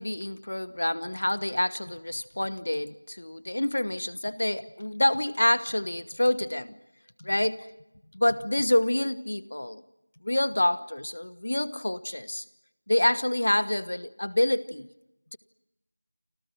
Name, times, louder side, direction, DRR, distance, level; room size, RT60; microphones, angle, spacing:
voice 1, 0.0-6.8 7.2-7.7 8.1-9.8 10.2-12.4 12.9-14.9, left 1 dB, 50° left, 16 dB, 1.2 m, -27 dB
29.5 x 25.5 x 6.3 m, 0.91 s
figure-of-eight pair, 180°, 0 cm